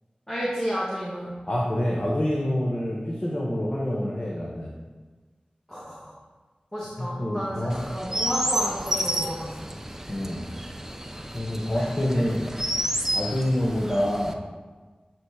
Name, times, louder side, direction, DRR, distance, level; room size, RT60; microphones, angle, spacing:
voice 1, 0.3-1.3 5.7-6.1 6.7-9.8 11.8-12.7, equal, 10° left, -6 dB, 1.2 m, -32 dB
voice 2, 1.5-4.7 7.0-7.7 10.1-10.5 11.3-12.4 13.1-14.4, equal, 40° left, -3 dB, 0.9 m, -27 dB
Chirp tweet, 7.7-14.3, right 1 dB, 15° right, 0.4 m, -31 dB
7.1 x 3.1 x 4.7 m, 1.4 s
wide cardioid pair, 55°, 3 cm